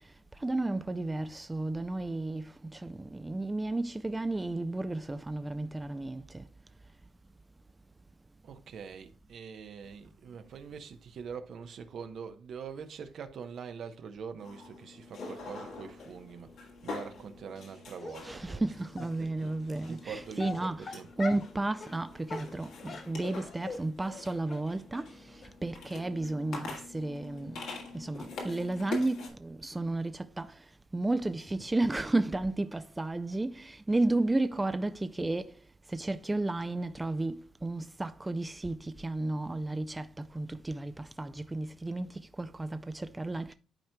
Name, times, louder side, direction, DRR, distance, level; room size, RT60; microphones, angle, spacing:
voice 1, 0.4-6.4 18.2-25.1 25.6-27.6 27.9-30.5 30.9-35.5 35.9-40.1 40.3-43.5, right 2 dB, 15° right, 0.4 m, -33 dB
voice 2, 8.4-16.5 16.8-18.7 19.0-21.1, right 6 dB, 65° right, 0.8 m, -44 dB
sound 1, 14.4-29.3, left 3 dB, 80° left, 1.8 m, -45 dB
Dog, 18.0-18.4 19.0-19.1 19.9-20.0 20.4-21.5 21.8-22.0 22.3-23.8 24.1-24.2 24.5-24.6 24.9-25.0 25.4-25.5 25.9-26.0 26.2-26.3, left 4 dB, 50° left, 1.5 m, -42 dB
11.5 x 4.4 x 2.2 m
cardioid pair, 90°, 0 cm